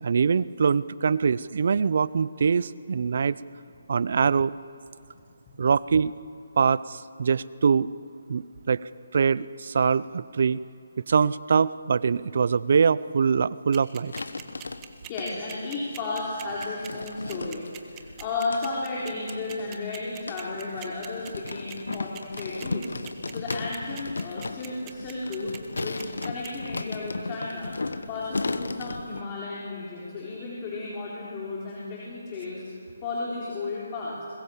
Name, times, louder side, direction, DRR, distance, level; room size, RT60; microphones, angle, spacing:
voice 1, 0.0-3.4 3.9-4.5 5.6-6.1 6.6-7.9 8.3-10.6 11.1-14.1, right 6 dB, 60° right, 19 dB, 0.6 m, -23 dB
sound 1, 13.7-26.5, right 15 dB, 25° right, 1.4 m, -42 dB
sound 2, 14.1-15.5 16.2-29.2, left 3 dB, 80° left, 1.2 m, -35 dB
voice 2, 15.0-23.0 23.3-25.5 25.8-27.7 28.1-32.7 33.0-34.2, left 3 dB, 25° left, -5 dB, 4.0 m, -33 dB
21.5 x 21.5 x 7.3 m, 2.4 s
figure-of-eight pair, 155°, 0 cm